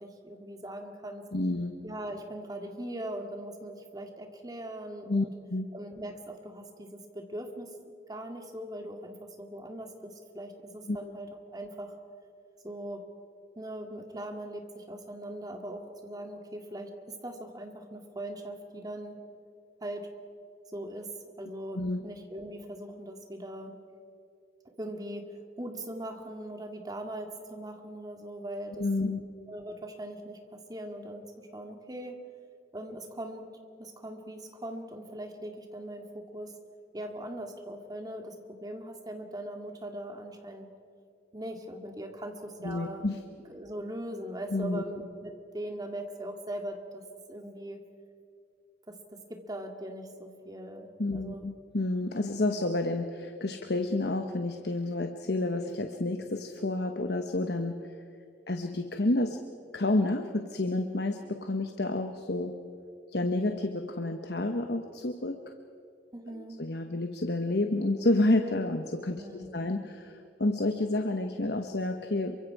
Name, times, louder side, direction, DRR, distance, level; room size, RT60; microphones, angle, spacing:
voice 1, 0.0-1.2 1.8-5.3 5.7-11.9 12.6-13.0 13.6-19.2 19.8-20.1 20.7-21.1 21.4-23.7 24.8-29.1 29.5-32.2 32.7-33.5 33.8-36.5 36.9-40.7 41.3-43.0 43.5-47.0 47.3-47.8 48.9-49.0 49.3-51.5 66.1-66.6 69.2-69.7, right 1 dB, 20° right, 4 dB, 2.1 m, -40 dB
voice 2, 1.3-1.8 5.1-5.7 10.9-11.1 21.7-22.0 28.8-29.2 42.6-43.2 44.5-44.8 51.0-57.8 58.5-59.4 59.7-62.6 63.1-65.4 66.3-69.2 69.5-70.1 70.4-72.4, left 2 dB, 65° left, 6 dB, 1.1 m, -29 dB
27.5 x 24.0 x 4.8 m, 2.6 s
head